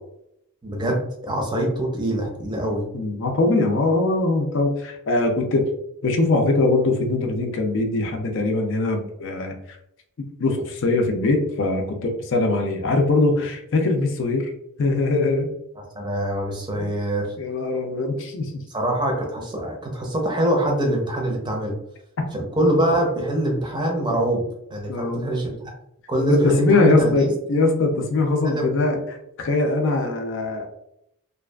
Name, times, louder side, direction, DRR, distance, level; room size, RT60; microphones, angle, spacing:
voice 1, 0.6-2.9 15.8-17.3 18.7-21.8 22.3-24.4 24.7-25.5 26.1-27.3 28.4-28.8, right 1 dB, 20° right, 0 dB, 0.5 m, -24 dB
voice 2, 2.9-5.7 6.0-9.8 10.4-14.5 14.8-15.5 16.8-16.9 17.4-18.6 24.9-25.3 26.3-29.0 29.4-30.7, left 2 dB, 55° left, 3 dB, 0.4 m, -21 dB
2.6 x 2.4 x 2.2 m, 0.76 s
head